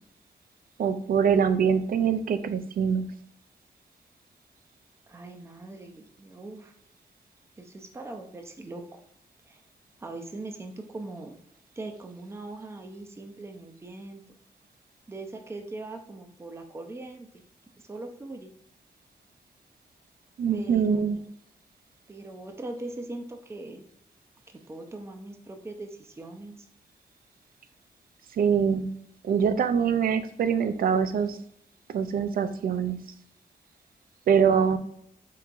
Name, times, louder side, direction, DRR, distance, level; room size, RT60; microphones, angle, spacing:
voice 1, 0.8-3.1 20.4-21.2 28.4-28.9 29.2-31.4 31.9-33.0 34.3-34.8, right 7 dB, 70° right, 10 dB, 0.4 m, -24 dB
voice 2, 5.1-6.7 7.6-9.0 9.5-9.6 10.0-11.4 11.8-14.4 15.1-17.4 17.8-18.5 20.5-21.2 22.1-23.8 24.7-26.7, right 2 dB, 15° right, 4 dB, 0.5 m, -41 dB
4.7 x 3.5 x 2.5 m, 0.72 s
cardioid pair, 90°, 15 cm